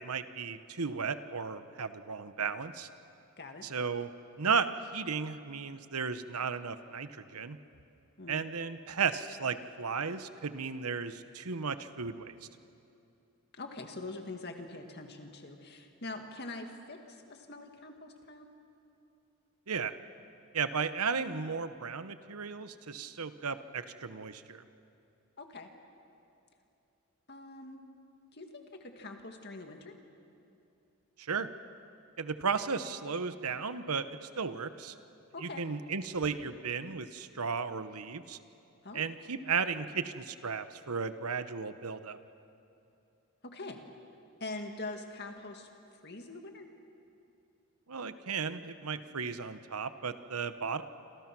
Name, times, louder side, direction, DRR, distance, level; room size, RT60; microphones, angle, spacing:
voice 1, 0.0-2.9 3.6-4.1 4.4-4.7 4.9-7.6 8.3-12.3 19.7-19.9 20.5-24.6 31.2-31.5 32.2-34.9 35.4-38.4 38.9-42.2 47.9-50.8, right 5 dB, 85° right, 11 dB, 1.0 m, -35 dB
voice 2, 13.5-18.5 25.4-25.7 27.3-27.8 28.3-29.9 35.3-35.6 38.8-39.0 43.4-43.8 44.4-45.7 46.0-46.7, left 2 dB, 45° left, 4 dB, 2.2 m, -43 dB
27.0 x 27.0 x 6.2 m, 2.7 s
head